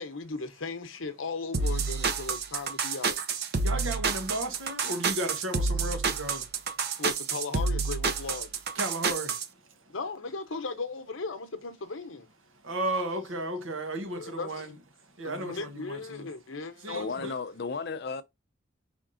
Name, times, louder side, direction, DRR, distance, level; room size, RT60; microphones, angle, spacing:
voice 1, 0.0-3.2 7.0-8.5 9.9-12.3 14.1-14.7 15.2-17.3, left 4 dB, 80° left, 0.9 m, -37 dB
sound 1, 1.5-9.4, right 4 dB, 55° right, 0.6 m, -29 dB
voice 2, 3.6-6.5 8.7-9.4 12.6-14.7 15.2-16.3 16.8-17.3, right 1 dB, 90° right, 1.2 m, -34 dB
voice 3, 16.9-18.2, left 4 dB, 55° left, 0.5 m, -34 dB
5.1 x 3.6 x 2.6 m
head